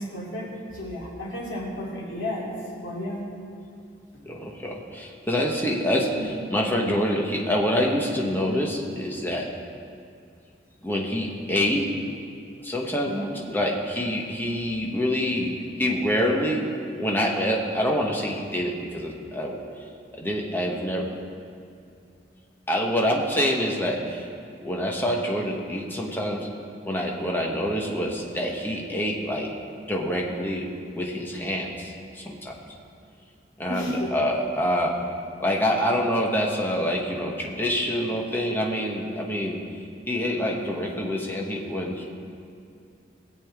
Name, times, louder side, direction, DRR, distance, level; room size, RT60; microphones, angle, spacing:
voice 1, 0.0-2.5 2.8-3.2 6.1-6.2 13.0-13.3 33.7-34.1, left 1 dB, 85° left, -6 dB, 3.2 m, -32 dB
voice 2, 4.2-9.5 10.8-11.9 12.6-13.2 13.5-16.7 16.9-19.7 20.1-21.1 22.7-24.3 24.6-26.5 26.9-29.5 29.9-32.6 33.6-35.0 35.4-39.6 40.1-42.1, equal, 10° left, -1 dB, 1.2 m, -26 dB
20.0 x 7.8 x 3.6 m, 2.5 s
head